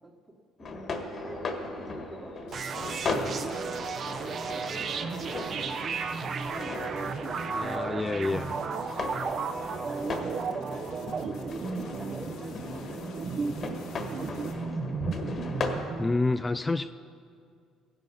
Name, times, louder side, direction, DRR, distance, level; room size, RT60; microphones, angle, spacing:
voice 1, 0.0-7.1 9.3-15.7, right 2 dB, 25° right, -2 dB, 1.4 m, -47 dB
sound 1, 0.6-15.9, left 3 dB, 45° left, 1.5 m, -37 dB
sound 2, 2.5-14.5, left 5 dB, 85° left, 2.1 m, -54 dB
sound 3, 2.5-16.1, right 5 dB, 45° right, 0.7 m, -34 dB
voice 2, 7.5-8.5 16.0-16.9, left 3 dB, 20° left, 11 dB, 0.3 m, -28 dB
16.0 x 11.0 x 5.4 m, 2.3 s
cardioid pair, 95°, 0 cm